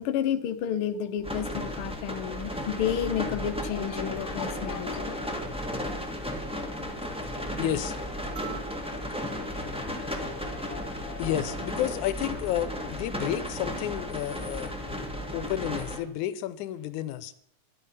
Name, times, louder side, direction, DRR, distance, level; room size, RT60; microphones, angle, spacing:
voice 1, 0.0-5.4, left 9 dB, 65° left, 7 dB, 1.4 m, -31 dB
sound 1, 1.2-16.0, equal, 5° right, 0.7 m, -34 dB
sound 2, 6.6-12.1, left 6 dB, 50° left, 1.8 m, -47 dB
voice 2, 7.6-8.0 11.2-14.7 15.3-17.3, left 12 dB, 85° left, 14 dB, 2.2 m, -31 dB
sound 3, 8.4-10.9 12.5-12.6, right 12 dB, 85° right, 2.6 m, -48 dB
12.0 x 11.5 x 5.6 m, 0.65 s
omnidirectional pair, 3.4 m